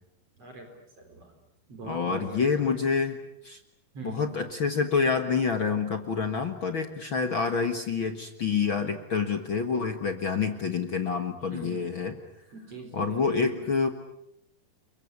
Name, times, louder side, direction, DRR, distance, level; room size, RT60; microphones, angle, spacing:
voice 1, 0.4-1.3 1.7-2.7 3.9-4.3 11.5-11.9 12.5-13.7, right 2 dB, 45° right, 5 dB, 4.8 m, -43 dB
voice 2, 1.8-3.2 3.4-3.6 4.0-12.1 12.9-13.9, left 5 dB, 50° left, 7 dB, 1.7 m, -27 dB
30.0 x 23.0 x 8.3 m, 0.79 s
omnidirectional pair, 4.1 m